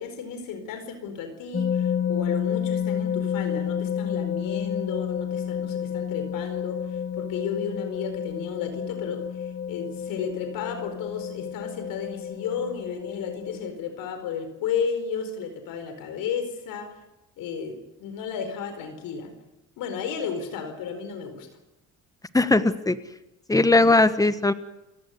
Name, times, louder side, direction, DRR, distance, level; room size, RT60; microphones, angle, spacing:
voice 1, 0.0-17.0 17.4-19.3 19.8-21.5, left 6 dB, 80° left, 8 dB, 4.6 m, -33 dB
sound 1, 1.5-13.7, left 8 dB, 30° left, 1.8 m, -30 dB
voice 2, 22.3-23.0 23.5-24.5, left 2 dB, 10° left, 12 dB, 1.4 m, -19 dB
29.5 x 17.5 x 8.4 m, 0.94 s
cardioid pair, 105°, 33 cm